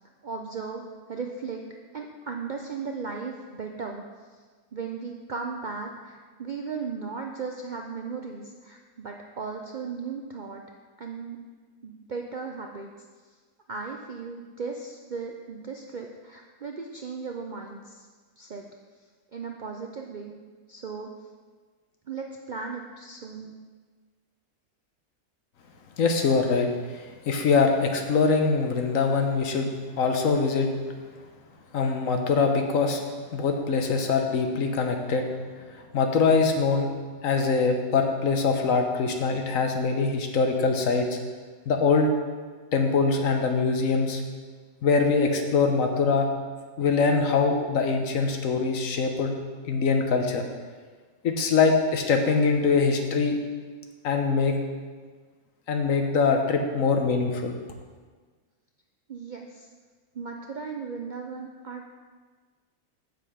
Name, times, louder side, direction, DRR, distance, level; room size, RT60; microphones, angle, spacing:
voice 1, 0.2-0.8 1.1-1.6 1.9-4.0 4.7-10.6 11.0-11.4 11.8-12.9 13.7-18.1 18.4-18.6 19.3-20.4 20.7-21.1 22.1-23.6 59.1-59.7 60.1-61.8, right 5 dB, 55° right, 2 dB, 0.5 m, -36 dB
voice 2, 26.0-26.7 26.9-29.7 30.0-30.7 31.7-33.0 33.3-35.3 35.9-36.9 37.2-41.2 41.7-42.1 42.7-44.2 44.8-46.3 46.8-49.3 49.6-50.4 51.2-53.4 54.0-54.6 55.7-57.6, left 4 dB, 70° left, 4 dB, 1.3 m, -23 dB
7.6 x 6.8 x 4.9 m, 1.5 s
omnidirectional pair, 1.5 m